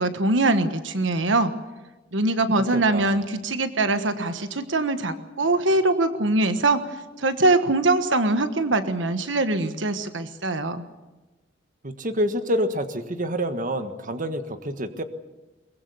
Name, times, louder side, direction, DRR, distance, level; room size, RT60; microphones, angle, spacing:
voice 1, 0.0-1.5 2.1-10.8, right 2 dB, 80° right, 9 dB, 1.4 m, -23 dB
voice 2, 2.7-3.2 11.8-15.0, equal, 45° right, 8 dB, 1.6 m, -27 dB
23.0 x 21.0 x 7.0 m, 1.2 s
head